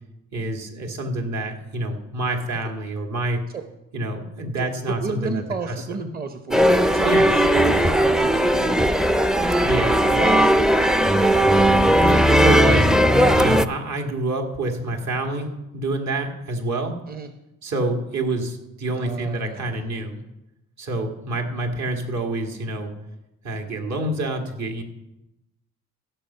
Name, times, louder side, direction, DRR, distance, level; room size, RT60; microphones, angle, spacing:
voice 1, 0.3-3.4 3.9-6.0 7.0-7.4 9.6-10.0 12.0-12.9 13.3-16.9 17.6-20.2 20.8-22.9 23.4-24.8, right 2 dB, 65° right, 3 dB, 2.3 m, -27 dB
voice 2, 4.6-9.2 9.9-10.7 17.1-17.3 18.9-19.8, right 4 dB, 30° right, 8 dB, 0.8 m, -32 dB
sound 1, 6.5-13.7, equal, ahead, 0.4 m, -17 dB
16.0 x 6.4 x 5.7 m, 0.93 s
cardioid pair, 90°, 30 cm